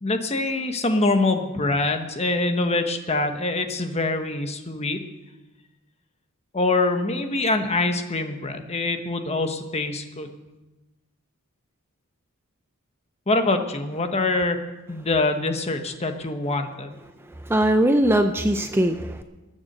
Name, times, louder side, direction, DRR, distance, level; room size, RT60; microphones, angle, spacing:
voice 1, 0.0-5.0 6.5-10.3 13.3-14.6 14.9-17.0, left 2 dB, 30° left, 6 dB, 1.1 m, -24 dB
voice 2, 17.3-19.2, right 1 dB, 10° right, 7 dB, 0.5 m, -21 dB
19.5 x 7.1 x 6.7 m, 1.1 s
head